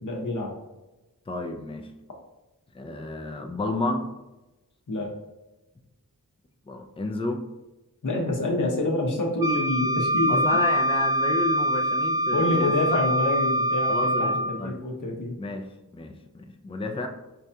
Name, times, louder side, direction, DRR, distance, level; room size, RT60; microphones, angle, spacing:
voice 1, 0.0-0.6 4.9-5.1 8.0-10.5 12.3-15.4, left 2 dB, 60° left, -1 dB, 0.8 m, -27 dB
voice 2, 1.3-1.9 2.7-4.0 6.7-7.5 10.2-13.0 13.9-14.8 15.4-17.1, left 2 dB, 15° left, 5 dB, 0.3 m, -31 dB
Wind instrument woodwind instrument, 9.4-14.5, equal, 85° right, 0.7 m, -24 dB
4.6 x 2.7 x 2.2 m, 1.0 s
wide cardioid pair, 45°, 36 cm